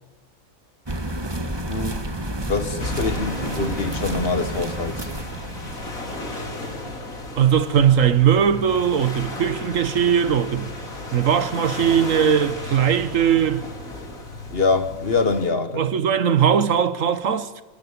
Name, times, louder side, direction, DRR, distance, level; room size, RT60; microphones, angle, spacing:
sound 1, 0.8-6.1, right 1 dB, 20° right, 1.4 m, -30 dB
voice 1, 2.5-5.1 14.5-15.8, left 4 dB, 45° left, 1.6 m, -24 dB
sound 2, 2.8-15.5, left 2 dB, 80° left, 3.4 m, -34 dB
voice 2, 7.4-10.7 11.1-13.6 15.7-17.6, right 8 dB, 70° right, 1.4 m, -19 dB
28.0 x 13.0 x 9.5 m
omnidirectional pair, 1.4 m